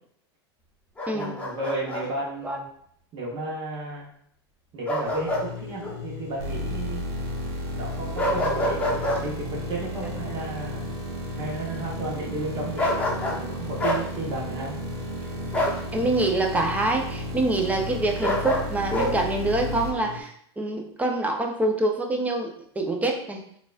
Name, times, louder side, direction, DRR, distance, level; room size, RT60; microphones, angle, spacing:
Bark, 1.0-2.0 4.9-5.5 5.8-6.0 8.2-9.2 12.8-13.4 13.8-14.0 15.5-15.8 18.2-19.1, left 1 dB, 10° left, 0.8 m, -26 dB
voice 1, 1.1-2.7 3.1-4.1 4.7-7.0 7.7-10.8 11.3-12.8 13.3-14.8, right 2 dB, 40° right, -3 dB, 0.8 m, -33 dB
sound 1, 5.0-20.2, left 7 dB, 65° left, 0.4 m, -39 dB
sound 2, 6.4-19.9, right 2 dB, 75° right, 0.9 m, -34 dB
voice 2, 15.9-23.4, right 2 dB, 10° right, 2 dB, 0.5 m, -26 dB
3.9 x 2.3 x 2.4 m, 0.67 s
hypercardioid pair, 95°, 14 cm